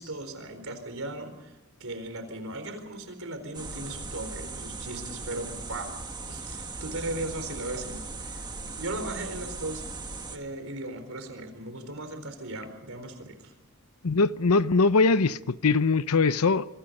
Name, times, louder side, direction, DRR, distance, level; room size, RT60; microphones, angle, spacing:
voice 1, 0.0-5.9 6.2-9.8 10.3-13.5, right 2 dB, 65° right, 4.4 m, -37 dB
sound 1, 3.5-10.4, right 3 dB, 20° right, 1.6 m, -38 dB
voice 2, 14.0-16.7, left 4 dB, 85° left, 0.8 m, -22 dB
26.0 x 24.5 x 5.4 m
head